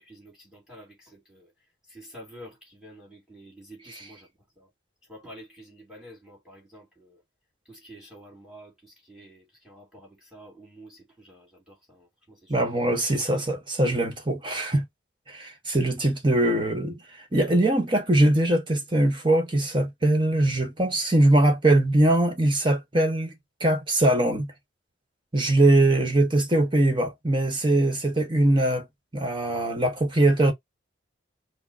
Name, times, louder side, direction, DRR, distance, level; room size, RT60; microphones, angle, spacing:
voice 1, 0.0-1.5 1.9-4.3 4.6-4.7 5.1-7.2 7.7-12.5, equal, 5° right, 2.6 m, -49 dB
voice 2, 12.5-14.8 15.3-17.0 17.3-23.3 23.6-24.5 25.3-28.9 29.1-30.5, right 1 dB, 25° right, 1.2 m, -22 dB
4.9 x 2.1 x 4.1 m
head